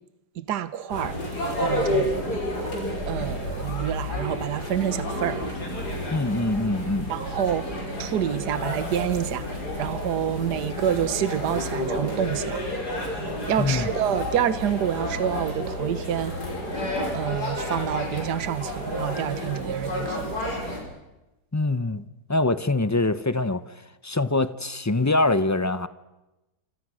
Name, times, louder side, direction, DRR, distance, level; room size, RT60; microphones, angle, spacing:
voice 1, 0.4-1.2 1.6-2.3 3.1-5.4 7.1-12.7 13.5-16.4 17.1-20.7, right 10 dB, 70° right, 1.6 m, -28 dB
sound 1, 0.9-20.8, left 1 dB, 65° left, 6.7 m, -30 dB
voice 2, 6.1-7.1 13.6-13.9 21.5-22.0 22.3-23.6 24.0-25.9, left 2 dB, 15° left, 0.5 m, -24 dB
27.5 x 27.0 x 6.4 m
omnidirectional pair, 1.8 m